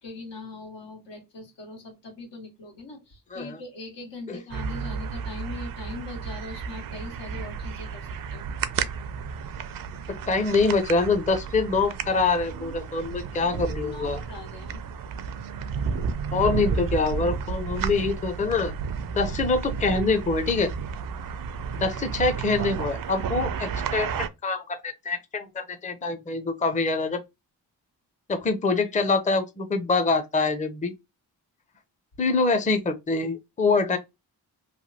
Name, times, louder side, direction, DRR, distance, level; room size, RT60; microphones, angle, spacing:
voice 1, 0.0-8.5 13.8-14.8, left 3 dB, 85° left, 1.7 m, -41 dB
sound 1, 4.5-24.3, right 6 dB, 55° right, 0.5 m, -32 dB
voice 2, 10.1-14.2 16.3-18.7 19.1-20.7 21.7-27.2 28.3-30.9 32.2-34.0, left 3 dB, 20° left, 0.5 m, -25 dB
3.2 x 2.2 x 2.7 m
cardioid pair, 70°, 41 cm